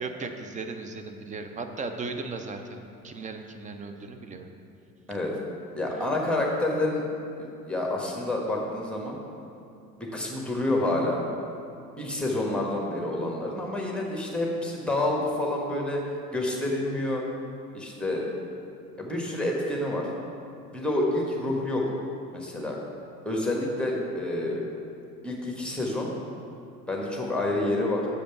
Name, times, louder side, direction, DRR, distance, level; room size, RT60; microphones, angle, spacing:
voice 1, 0.0-4.5, right 3 dB, 15° right, 6 dB, 0.5 m, -36 dB
voice 2, 5.7-7.0 7.4-9.2 10.0-11.2 12.0-16.0 16.3-17.2 17.7-18.2 19.0-20.1 20.7-21.8 22.3-22.8 23.2-24.6 25.2-26.1 26.9-28.1, left 1 dB, ahead, -2 dB, 1.4 m, -28 dB
6.6 x 5.1 x 5.8 m, 2.5 s
figure-of-eight pair, 70°, 45 cm